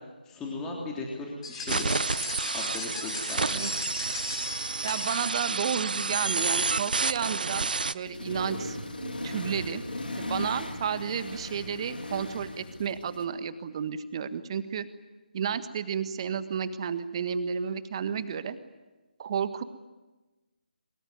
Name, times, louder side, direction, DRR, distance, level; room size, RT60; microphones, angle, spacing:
voice 1, 0.2-2.0 2.5-3.6, left 3 dB, 10° left, -2 dB, 3.3 m, -37 dB
sound 1, 1.4-5.7, left 4 dB, 35° left, 7.0 m, -38 dB
sound 2, 1.7-7.9, right 4 dB, 60° right, 0.9 m, -30 dB
voice 2, 4.8-9.8 10.2-14.8 15.3-18.6 19.2-19.6, right 7 dB, 35° right, 11 dB, 1.5 m, -32 dB
Accelerating revving vroom, 8.0-13.2, left 1 dB, 75° left, 3.6 m, -37 dB
23.5 x 23.0 x 9.3 m, 1.2 s
figure-of-eight pair, 150°, 5 cm